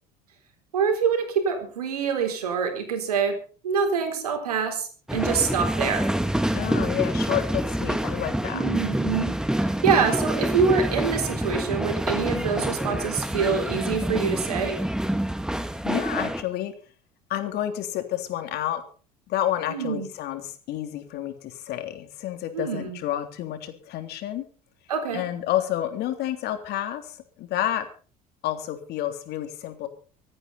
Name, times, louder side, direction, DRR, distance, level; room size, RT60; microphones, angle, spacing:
voice 1, 0.7-3.4 3.6-6.1 8.5-14.8 19.7-20.1 22.5-23.0 24.9-25.2, right 6 dB, 85° right, 6 dB, 4.1 m, -25 dB
sound 1, 5.1-16.4, right 1 dB, 5° right, 2.2 m, -27 dB
voice 2, 6.5-8.6 15.8-16.7 17.3-18.8 19.3-24.5 25.1-27.9 28.4-29.9, left 12 dB, 60° left, 7 dB, 3.4 m, -29 dB
25.0 x 9.9 x 4.2 m, 0.39 s
hypercardioid pair, 65°, 19 cm